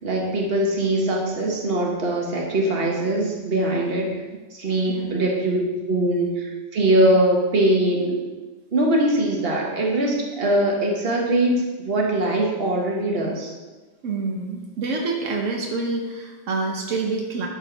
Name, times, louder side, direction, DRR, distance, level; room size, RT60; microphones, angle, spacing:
voice 1, 0.0-4.1 4.5-8.2 8.7-13.5, right 1 dB, 55° right, -1 dB, 1.6 m, -22 dB
voice 2, 14.0-17.5, right 3 dB, 85° right, 0 dB, 1.3 m, -27 dB
11.0 x 4.5 x 4.6 m, 1.2 s
omnidirectional pair, 1.3 m